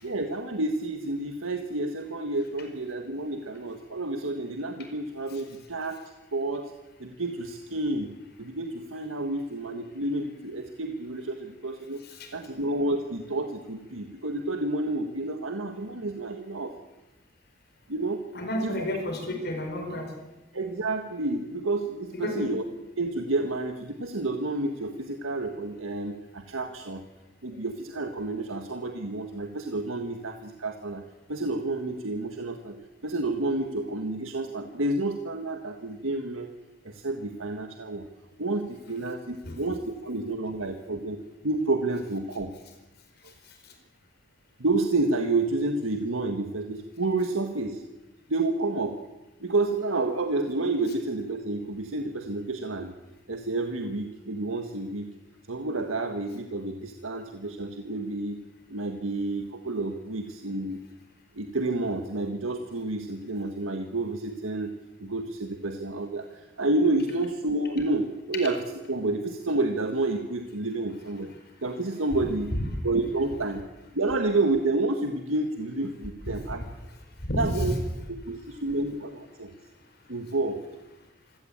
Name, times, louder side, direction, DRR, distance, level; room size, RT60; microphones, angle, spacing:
voice 1, 0.0-6.0 6.3-6.7 7.0-8.1 8.4-12.0 12.3-16.7 17.9-18.3 18.6-18.8 20.5-22.6 23.0-27.0 27.4-31.0 31.3-32.7 33.0-36.5 36.8-38.0 38.4-42.5 44.6-47.8 48.3-49.0 49.4-53.0 53.3-55.1 55.5-58.4 58.7-60.8 61.3-64.7 65.0-68.6 68.9-71.3 71.6-72.5 72.8-73.6 73.9-76.6 77.4-77.7 78.1-79.5 80.1-80.6, right 2 dB, 85° right, 5 dB, 1.6 m, -29 dB
voice 2, 12.0-12.4 18.3-20.1 22.1-22.5 39.4-39.6 43.4-43.7 72.5-72.7 76.3-76.4 76.9-77.8, left 1 dB, 55° left, 3 dB, 4.7 m, -31 dB
25.5 x 16.5 x 8.7 m, 1.1 s
head